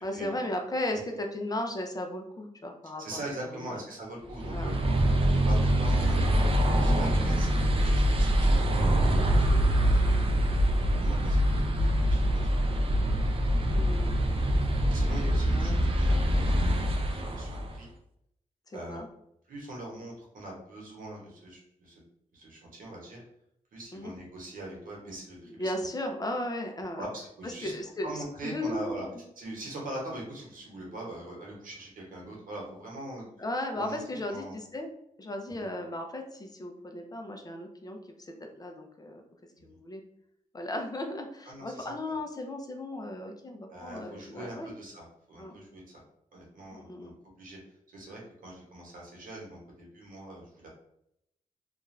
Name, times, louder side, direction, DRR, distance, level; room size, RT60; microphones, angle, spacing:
voice 1, 0.0-3.2 3.5-3.7 4.5-4.8 9.4-9.7 13.7-14.2 15.5-15.8 18.7-19.1 23.9-24.1 25.5-27.1 27.4-28.1 28.4-29.0 33.4-34.9 35.2-39.2 39.6-40.0 40.5-44.7 45.4-45.6 46.7-47.1, left 1 dB, 30° left, 3 dB, 0.4 m, -36 dB
voice 2, 3.0-4.7 5.3-8.7 9.2-9.4 9.7-10.2 10.9-12.8 14.4-14.5 14.9-17.9 18.7-19.0 19.5-21.9 22.3-23.2 23.7-25.9 27.0-27.7 28.0-29.1 29.4-33.3 33.7-34.0 34.3-34.5 35.6-35.7 39.7-39.8 41.5-42.2 43.7-46.0 46.3-47.6 47.9-50.7, right 1 dB, 85° right, -2 dB, 1.0 m, -42 dB
sound 1, 4.3-17.8, equal, 45° right, 0.4 m, -24 dB
2.4 x 2.3 x 3.1 m, 0.76 s
wide cardioid pair, 95°, 14 cm